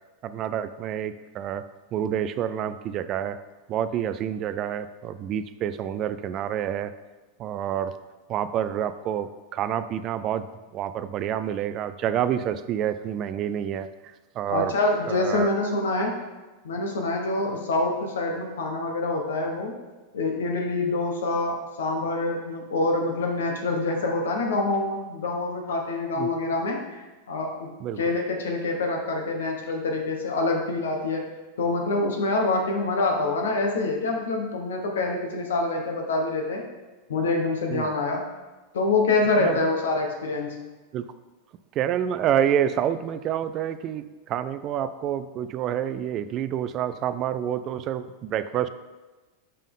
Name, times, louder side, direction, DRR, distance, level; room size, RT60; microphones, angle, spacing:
voice 1, 0.2-1.6 1.9-3.4 3.7-6.9 7.4-7.9 8.3-10.5 10.7-14.7 15.1-15.5 26.2-26.3 27.8-28.0 37.7-37.9 39.4-39.6 40.9-41.1 41.7-48.7, right 10 dB, 40° right, 12 dB, 0.3 m, -28 dB
voice 2, 14.5-16.2 16.6-19.8 20.1-27.0 27.3-27.7 28.0-31.3 31.6-36.7 37.1-38.2 38.7-40.6, left 2 dB, 90° left, 2 dB, 1.2 m, -26 dB
5.4 x 5.3 x 3.7 m, 1.2 s
hypercardioid pair, 125°, 0 cm